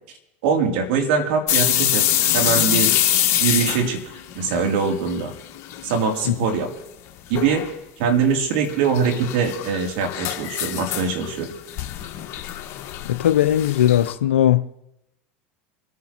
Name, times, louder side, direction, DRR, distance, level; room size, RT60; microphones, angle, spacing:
voice 1, 0.4-2.0 2.3-2.9 3.4-4.0 4.3-5.3 5.8-6.7 7.3-7.7 8.0-11.5, right 5 dB, 70° right, 3.1 m, -22 dB
sound 1, 1.5-5.3 5.5-6.2 6.6-6.7 7.3-7.7 8.7-14.1, left 12 dB, 50° left, 1.6 m, -24 dB
voice 2, 13.0-14.6, left 11 dB, 85° left, 0.6 m, -18 dB
28.0 x 9.5 x 3.0 m
hypercardioid pair, 90°, 6 cm